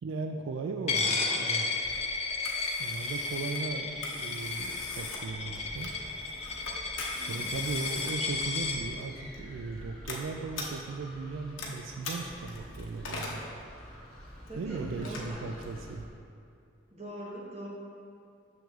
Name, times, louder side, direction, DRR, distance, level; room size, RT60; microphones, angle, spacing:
voice 1, 0.0-1.8 2.8-6.0 7.3-13.4 14.5-16.1, right 4 dB, 80° right, 4 dB, 0.3 m, -37 dB
Coin (dropping), 0.9-8.8, left 4 dB, 30° left, 0.4 m, -33 dB
Telephone, 1.8-16.1, left 2 dB, 85° left, 0.9 m, -42 dB
sound 1, 5.3-16.0, left 1 dB, 5° left, 1.1 m, -52 dB
voice 2, 14.5-15.4 16.9-17.7, right 1 dB, 35° right, -5 dB, 1.0 m, -42 dB
7.0 x 6.1 x 2.4 m, 2.5 s
head